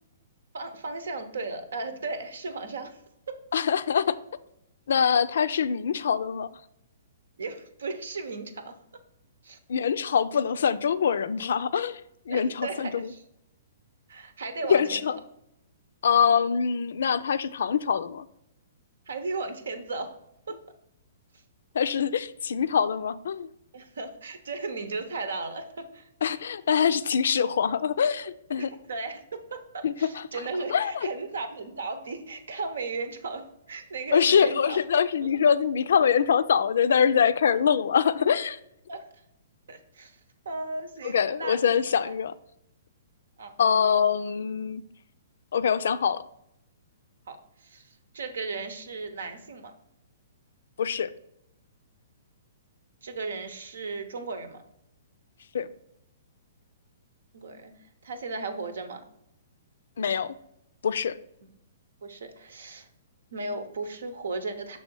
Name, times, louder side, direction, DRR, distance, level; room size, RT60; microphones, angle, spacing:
voice 1, 0.5-3.0 7.4-8.8 9.4-9.6 12.3-13.2 14.1-15.1 19.1-20.2 20.5-20.6 23.7-26.1 28.5-29.6 30.0-34.8 38.9-39.0 39.7-40.1 40.4-41.6 42.0-42.1 43.4-43.5 47.3-47.4 47.6-47.8 48.1-49.7 53.0-54.6 57.3-57.7 58.0-59.0 62.0-62.9 63.3-64.8, right 3 dB, 85° right, 9 dB, 0.9 m, -35 dB
voice 2, 3.5-4.2 4.9-6.5 9.7-12.0 12.3-13.1 14.7-15.2 16.0-18.2 21.7-23.5 26.2-28.7 29.8-30.2 30.7-31.1 34.1-38.6 41.0-42.3 43.6-44.8 45.5-46.2 50.8-51.1 55.5-55.7 60.0-60.3 60.8-61.1, left 7 dB, 75° left, 14 dB, 0.4 m, -24 dB
6.2 x 3.3 x 5.3 m, 0.80 s
hypercardioid pair, 150°, 0 cm